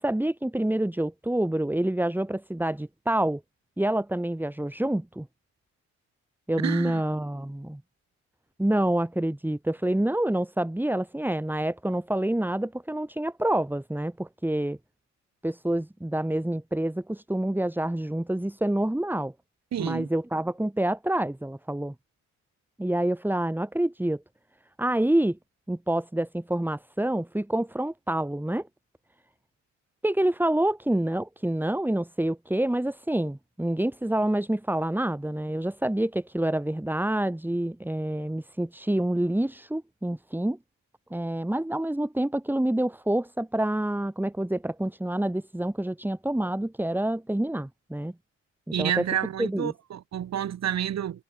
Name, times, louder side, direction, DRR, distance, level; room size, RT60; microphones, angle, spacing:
voice 1, 0.0-3.4 3.8-5.3 6.5-7.8 8.6-14.8 15.4-19.3 19.8-21.9 22.8-24.2 24.8-25.4 25.7-28.7 30.0-40.6 41.1-48.1 48.7-49.1 49.4-49.7, right 1 dB, 5° right, 4.8 m, -27 dB
voice 2, 6.6-7.0 19.7-20.1 48.7-51.2, right 10 dB, 60° right, 2.6 m, -29 dB
cardioid pair, 90°, 30 cm